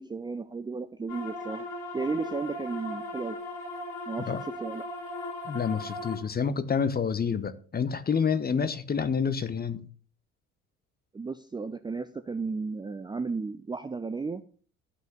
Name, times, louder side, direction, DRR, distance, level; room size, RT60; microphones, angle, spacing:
voice 1, 0.0-1.6 1.9-3.4 4.1-4.8 11.1-14.4, right 4 dB, 10° right, 0.6 m, -34 dB
sound 1, 1.1-6.2, left 2 dB, 55° left, 3.1 m, -38 dB
voice 2, 5.4-9.9, left 6 dB, 20° left, 1.0 m, -28 dB
12.5 x 6.0 x 6.7 m
figure-of-eight pair, 55°, 43 cm